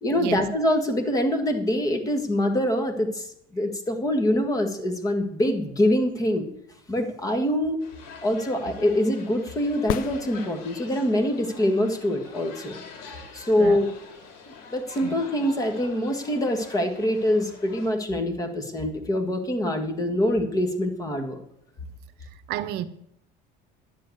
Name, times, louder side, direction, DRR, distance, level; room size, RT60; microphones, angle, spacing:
voice 1, 0.0-6.5 6.9-7.8 8.2-12.8 13.3-13.9 14.7-21.4, left 1 dB, 20° left, 1.6 m, -24 dB
sound 1, 7.8-17.9, left 5 dB, 90° left, 3.2 m, -45 dB
sound 2, 9.9-11.0 14.9-15.0, left 12 dB, 50° left, 0.5 m, -33 dB
voice 2, 22.5-22.8, right 13 dB, 65° right, 0.8 m, -30 dB
10.5 x 7.7 x 8.0 m
cardioid pair, 145°, 19 cm